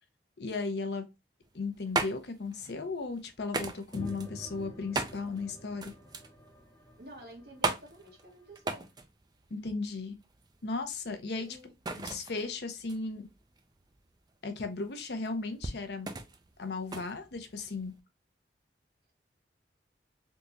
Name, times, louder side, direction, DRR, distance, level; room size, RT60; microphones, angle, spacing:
voice 1, 0.4-1.0 1.5-5.9 9.5-10.2 10.6-11.5 11.9-13.3 14.4-16.1 16.6-17.9, left 3 dB, 70° left, 0.7 m, -36 dB
sound 1, 1.4-18.0, right 3 dB, 25° right, 0.4 m, -39 dB
sound 2, 3.9-8.6, equal, 15° left, 0.6 m, -48 dB
voice 2, 7.0-8.8 11.4-11.7, equal, 60° right, 1.3 m, -50 dB
3.6 x 2.9 x 2.5 m
head